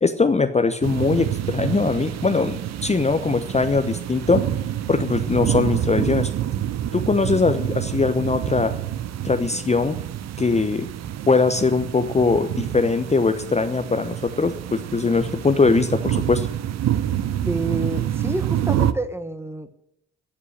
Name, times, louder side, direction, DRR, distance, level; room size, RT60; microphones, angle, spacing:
voice 1, 0.0-4.4 4.9-6.3 6.9-8.7 9.2-10.0 10.4-10.9 11.3-16.5, left 4 dB, 20° left, 8 dB, 1.0 m, -21 dB
sound 1, 0.8-18.9, right 11 dB, 50° right, 0.9 m, -27 dB
voice 2, 17.4-19.8, right 2 dB, 5° right, 11 dB, 1.3 m, -28 dB
14.5 x 7.3 x 10.0 m, 0.78 s
figure-of-eight pair, 40°, 35 cm